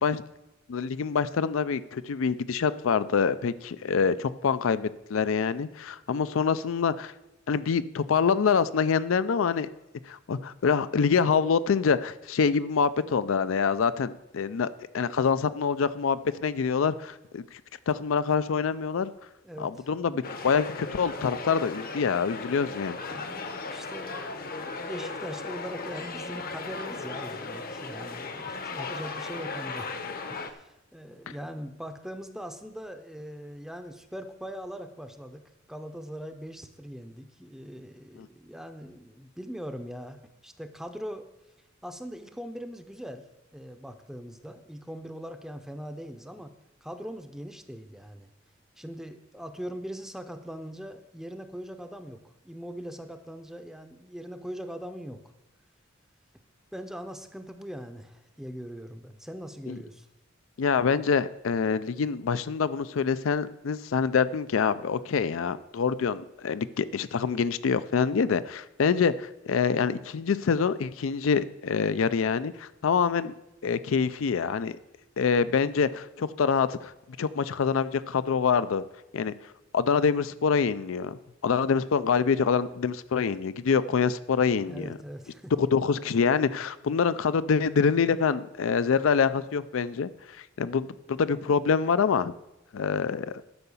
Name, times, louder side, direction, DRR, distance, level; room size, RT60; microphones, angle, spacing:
voice 1, 0.7-7.1 7.5-9.7 10.0-17.6 17.9-19.1 19.6-23.0 38.2-38.3 59.7-59.8 60.6-73.3 73.6-74.8 75.2-76.9 77.2-78.8 79.1-81.2 81.4-84.9 85.6-92.3 92.7-93.4, left 6 dB, 80° left, 15 dB, 0.4 m, -26 dB
sound 1, 20.2-30.5, left 3 dB, 50° left, 0.9 m, -37 dB
voice 2, 23.1-35.4 35.7-41.3 41.8-43.3 43.5-46.5 46.8-48.3 48.8-55.2 56.7-60.1 84.6-85.5, equal, ahead, 7 dB, 0.6 m, -41 dB
12.0 x 5.6 x 7.0 m, 0.95 s
head